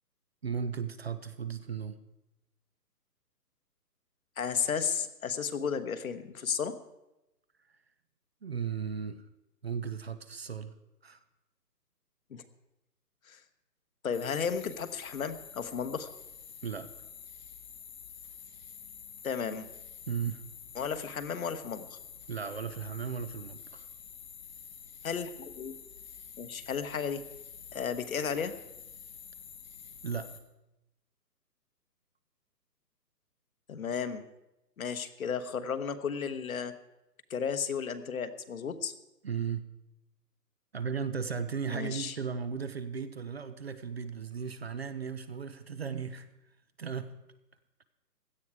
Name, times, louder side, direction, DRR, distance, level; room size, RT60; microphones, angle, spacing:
voice 1, 0.4-2.0 8.4-9.2 9.6-10.7 11.0-11.2 16.6-16.9 20.1-20.4 22.3-23.9 30.0-30.3 39.2-39.7 40.7-46.3 46.8-47.1, right 6 dB, 40° right, 13 dB, 0.7 m, -36 dB
voice 2, 4.4-6.7 12.3-12.4 13.3-13.4 14.0-16.1 19.2-19.7 20.7-22.0 25.0-25.7 26.4-27.2 27.7-28.5 33.7-34.2 34.8-36.7 37.3-38.9 41.7-42.2, left 6 dB, 55° left, 10 dB, 1.2 m, -33 dB
sound 1, 14.1-30.4, left 7 dB, 25° left, 1.0 m, -48 dB
16.5 x 12.0 x 4.8 m, 0.94 s
hypercardioid pair, 160°, 50 cm